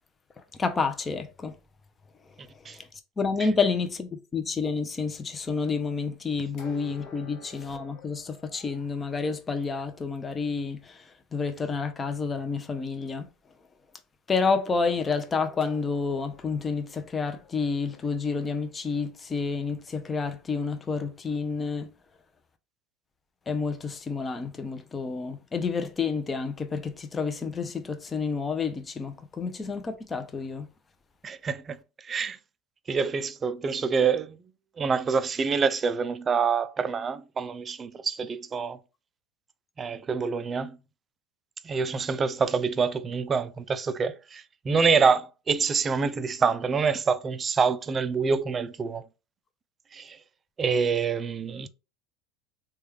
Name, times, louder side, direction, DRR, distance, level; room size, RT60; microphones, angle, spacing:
voice 1, 0.5-1.6 2.5-2.9 3.2-13.3 14.3-21.9 23.5-30.7, left 4 dB, 20° left, 0.5 m, -29 dB
sound 1, 6.6-9.3 15.2-19.2, left 4 dB, 55° left, 0.9 m, -52 dB
voice 2, 31.2-31.8 32.0-32.4 32.9-34.4 34.8-38.8 39.8-40.8 41.6-49.0 49.9-50.2 50.6-51.7, right 5 dB, 25° right, 0.3 m, -26 dB
3.1 x 2.3 x 3.3 m
supercardioid pair, 110°, 0 cm